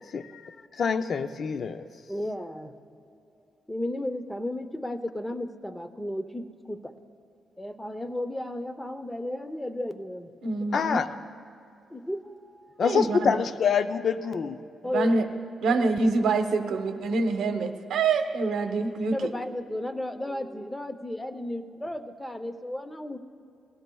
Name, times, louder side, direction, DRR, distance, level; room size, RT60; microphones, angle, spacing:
voice 1, 0.0-1.8 10.7-11.1 12.8-14.6, left 6 dB, 55° left, 10 dB, 0.5 m, -26 dB
voice 2, 2.1-2.7 3.7-6.9 7.6-10.3 11.9-12.7 14.8-15.2 15.6-15.8 19.1-23.2, left 1 dB, 10° left, 9 dB, 0.7 m, -34 dB
voice 3, 10.4-11.0 12.8-13.4 14.9-15.2 15.6-19.1, right 3 dB, 80° right, 7 dB, 0.9 m, -25 dB
19.5 x 16.5 x 2.3 m, 2.6 s
cardioid pair, 100°, 0 cm